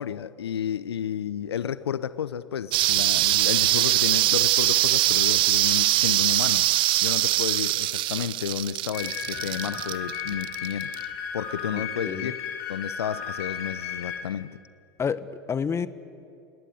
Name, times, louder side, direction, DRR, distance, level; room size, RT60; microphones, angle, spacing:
voice 1, 0.0-10.9 11.3-14.6, left 9 dB, 80° left, 0.8 m, -32 dB
sound 1, 2.7-11.0, right 16 dB, 40° right, 0.7 m, -23 dB
sound 2, 8.9-14.2, left 7 dB, 55° left, 4.8 m, -34 dB
voice 2, 11.7-12.3 15.0-15.9, left 6 dB, 20° left, 1.1 m, -29 dB
28.5 x 18.5 x 9.5 m
hypercardioid pair, 95°, 13 cm